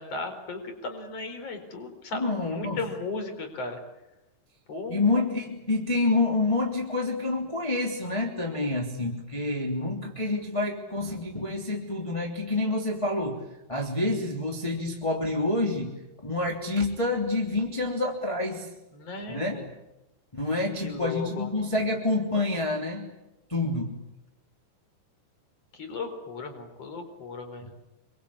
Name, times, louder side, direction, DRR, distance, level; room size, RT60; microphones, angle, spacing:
voice 1, 0.0-3.8 4.7-5.0 18.9-19.7 20.8-21.5 25.8-27.7, left 3 dB, 35° left, 7 dB, 5.1 m, -36 dB
voice 2, 2.1-2.8 4.9-13.4 13.7-15.9 16.2-18.7 19.3-19.7 20.3-23.1 23.5-24.0 27.6-27.7, left 2 dB, 10° left, -1 dB, 2.1 m, -28 dB
27.0 x 25.0 x 8.6 m, 0.97 s
omnidirectional pair, 5.3 m